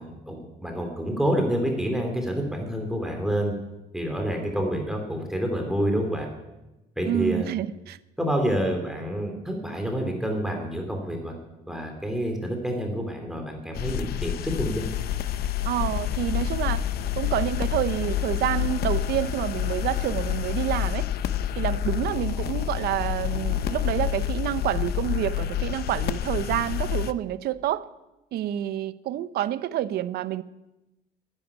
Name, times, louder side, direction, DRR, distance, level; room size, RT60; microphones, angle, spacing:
voice 1, 0.0-3.5 3.9-6.3 7.0-7.5 8.2-11.3 11.7-14.9, equal, 5° right, 2 dB, 2.8 m, -28 dB
voice 2, 7.0-8.0 15.6-16.8 17.2-21.1 21.6-27.8 28.3-30.4, right 12 dB, 70° right, 15 dB, 0.7 m, -28 dB
sound 1, 13.7-27.1, left 11 dB, 65° left, 0.7 m, -28 dB
11.0 x 11.0 x 9.8 m, 1.0 s
cardioid pair, 110°, 17 cm